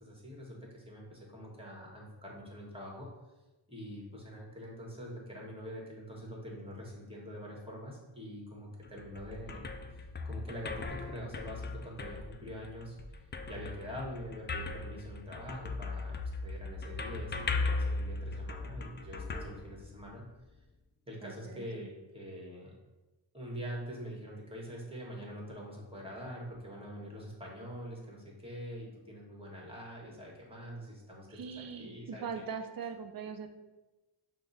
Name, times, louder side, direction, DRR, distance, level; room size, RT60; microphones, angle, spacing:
voice 1, 0.0-3.1 3.7-13.0 13.5-16.1 16.4-20.2 21.1-22.7 23.3-32.4, equal, 10° right, -2 dB, 1.4 m, -44 dB
sound 1, 8.8-20.3, left 3 dB, 25° left, 0.3 m, -38 dB
voice 2, 21.2-21.9 31.3-33.5, right 6 dB, 45° right, 7 dB, 0.6 m, -41 dB
5.8 x 2.2 x 4.1 m, 1.1 s
cardioid pair, 75°, 47 cm